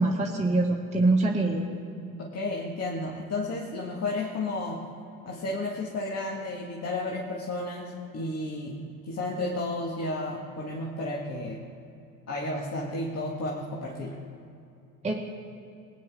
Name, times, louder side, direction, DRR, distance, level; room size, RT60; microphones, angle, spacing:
voice 1, 0.0-1.7 15.0-15.2, right 2 dB, 15° right, -2 dB, 1.6 m, -24 dB
voice 2, 2.2-4.9 5.2-11.7 12.3-14.2, left 2 dB, 35° left, -2 dB, 2.0 m, -32 dB
21.0 x 10.0 x 3.7 m, 2.6 s
figure-of-eight pair, 65°, 44 cm